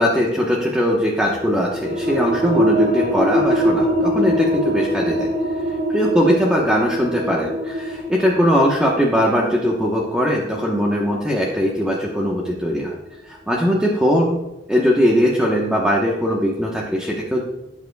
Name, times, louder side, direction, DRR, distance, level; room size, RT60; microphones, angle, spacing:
voice 1, 0.0-5.3 5.9-12.9 13.3-14.4 14.7-17.4, equal, 5° right, -3 dB, 1.1 m, -20 dB
sound 1, 1.3-12.5, equal, 60° right, 1.8 m, -23 dB
16.0 x 8.1 x 2.3 m, 0.99 s
head